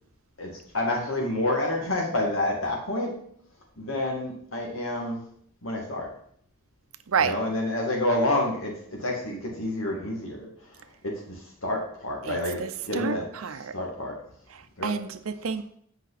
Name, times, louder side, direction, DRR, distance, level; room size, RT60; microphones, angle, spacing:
voice 1, 0.4-3.1 3.8-5.2 5.6-6.1 7.2-10.5 11.0-13.2 13.7-14.1 14.8-14.9, left 1 dB, 80° left, 0 dB, 2.2 m, -28 dB
voice 2, 12.2-13.7 14.5-15.6, right 6 dB, 90° right, 11 dB, 0.6 m, -29 dB
8.3 x 5.2 x 4.1 m, 0.64 s
head